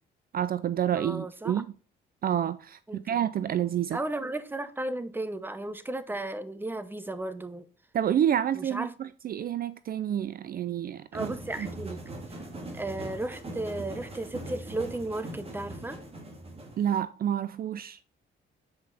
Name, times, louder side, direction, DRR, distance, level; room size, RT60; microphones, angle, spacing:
voice 1, 0.3-1.6 2.2-4.0 7.9-11.3 11.6-11.7 16.8-18.0, right 10 dB, 50° right, 0.4 m, -29 dB
voice 2, 0.9-1.6 2.9-3.2 3.9-7.6 8.5-8.9 11.1-12.0 12.7-16.0, right 2 dB, 10° right, 0.8 m, -34 dB
sound 1, 11.1-17.0, right 1 dB, 30° right, 2.1 m, -41 dB
7.9 x 5.1 x 4.1 m
cardioid pair, 90°, 20 cm